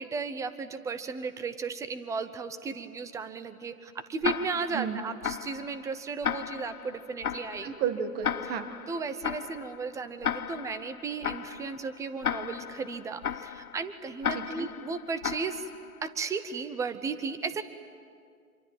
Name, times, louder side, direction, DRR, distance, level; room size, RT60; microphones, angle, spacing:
voice 1, 0.0-7.8 8.4-8.5 8.9-15.6 16.0-17.6, right 5 dB, 5° right, 12 dB, 0.8 m, -35 dB
Tick-tock, 4.2-16.1, left 8 dB, 90° left, 0.8 m, -36 dB
voice 2, 7.6-8.7 14.3-14.7, right 8 dB, 20° right, 9 dB, 1.6 m, -32 dB
26.5 x 23.5 x 9.1 m, 2.2 s
hypercardioid pair, 130°, 42 cm